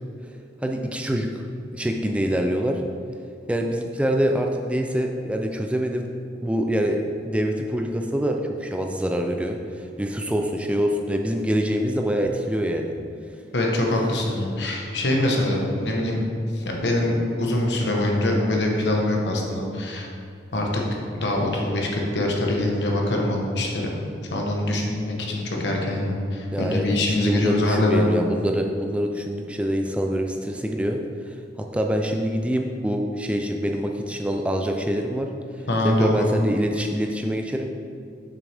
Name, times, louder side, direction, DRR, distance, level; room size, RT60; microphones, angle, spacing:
voice 1, 0.6-1.3 1.7-2.8 3.5-6.0 6.4-9.6 10.0-12.9 26.5-35.3 35.8-37.7, equal, 5° right, 3 dB, 0.3 m, -25 dB
voice 2, 13.5-16.2 16.5-20.1 20.5-20.8 21.1-23.8 24.3-28.1 35.7-36.3, left 1 dB, 75° left, 0 dB, 1.1 m, -24 dB
6.8 x 6.2 x 3.4 m, 2.5 s
head